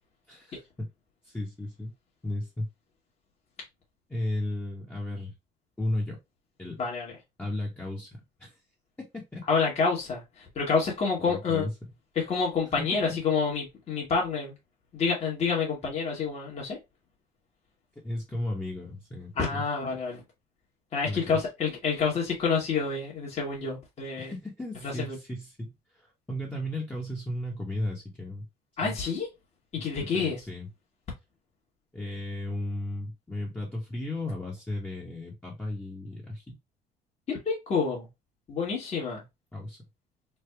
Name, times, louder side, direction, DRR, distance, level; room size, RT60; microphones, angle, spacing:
voice 1, 0.3-0.9 1.2-1.9 2.2-2.7 4.1-5.3 5.8-6.2 6.6-6.8 7.4-8.6 9.3-9.4 11.2-11.7 12.8-13.2 18.0-19.6 21.1-21.5 24.2-28.4 28.8-29.0 30.0-30.7 31.9-36.6 39.5-39.8, left 1 dB, 10° left, 0.9 m, -35 dB
voice 2, 6.8-7.1 9.5-10.2 10.5-11.7 12.2-14.5 14.9-16.8 19.4-20.2 20.9-24.3 24.8-25.2 28.8-29.3 29.7-30.4 37.3-38.1 38.5-39.2, left 5 dB, 40° left, 1.2 m, -28 dB
3.3 x 2.1 x 3.2 m
cardioid pair, 110°, 17 cm